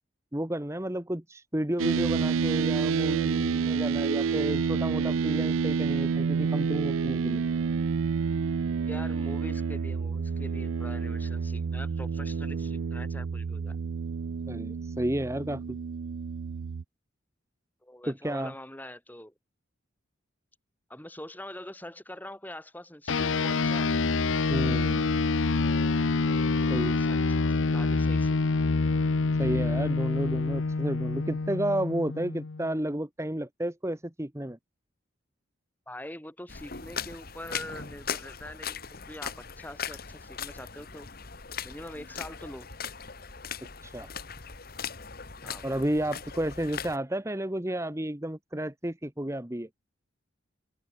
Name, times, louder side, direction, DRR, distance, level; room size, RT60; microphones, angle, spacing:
voice 1, 0.3-7.4 14.5-15.8 18.1-18.5 24.5-25.1 26.7-27.0 29.4-34.6 43.8-44.1 45.6-49.7, right 1 dB, 15° right, 1.2 m, -32 dB
sound 1, 1.8-16.8, right 5 dB, 90° right, 0.5 m, -29 dB
voice 2, 8.9-13.8 17.8-19.3 20.9-23.9 26.3-28.4 35.9-41.1 41.6-42.7 45.4-45.8, left 1 dB, 10° left, 2.9 m, -44 dB
sound 2, 23.1-32.8, left 3 dB, 75° left, 0.7 m, -26 dB
sound 3, 36.5-47.0, left 7 dB, 50° left, 1.9 m, -39 dB
open air
head